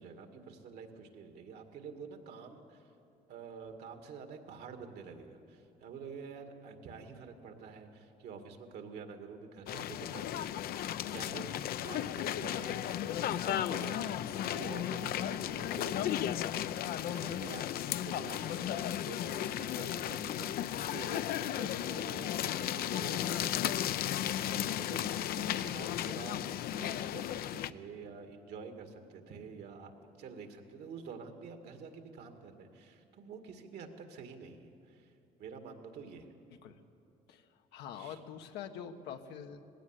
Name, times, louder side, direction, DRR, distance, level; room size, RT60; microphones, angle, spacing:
voice 1, 0.0-2.8 3.3-11.5 11.8-24.2 24.4-29.9 30.2-35.1 35.4-36.3 37.9-38.2, right 5 dB, 70° right, 5 dB, 2.2 m, -48 dB
sound 1, 9.7-27.7, left 11 dB, 65° left, 0.6 m, -35 dB
voice 2, 37.7-39.6, left 8 dB, 85° left, 6 dB, 1.3 m, -44 dB
19.5 x 16.5 x 8.2 m, 2.7 s
cardioid pair, 110°, 17 cm